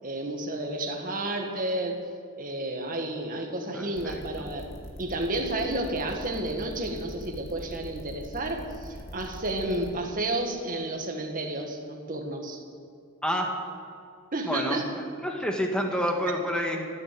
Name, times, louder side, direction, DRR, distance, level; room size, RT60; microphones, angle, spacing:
voice 1, 0.0-2.0 2.4-4.7 5.0-12.6 14.3-14.8, right 1 dB, 40° right, 3 dB, 1.8 m, -31 dB
voice 2, 3.7-4.5 13.2-13.6 14.4-16.9, equal, 5° left, 1 dB, 1.6 m, -29 dB
sound 1, 3.9-9.9, equal, 55° left, 2.4 m, -42 dB
14.5 x 9.6 x 7.6 m, 2.4 s
head